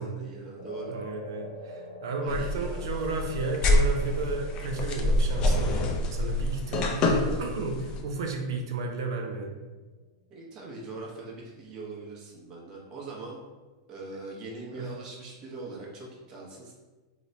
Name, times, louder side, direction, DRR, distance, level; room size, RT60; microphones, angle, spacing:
voice 1, 0.0-1.0 2.2-2.8 10.3-13.4 13.9-16.7, right 3 dB, 30° right, -3 dB, 0.9 m, -41 dB
sound 1, 0.6-9.1, left 1 dB, 65° left, 0.8 m, -47 dB
voice 2, 0.9-9.5 14.7-14.9, right 3 dB, 75° right, 2 dB, 0.6 m, -33 dB
sound 2, 2.3-8.0, left 1 dB, 35° left, 0.4 m, -26 dB
3.0 x 2.2 x 3.9 m, 1.3 s
supercardioid pair, 145°, 2 cm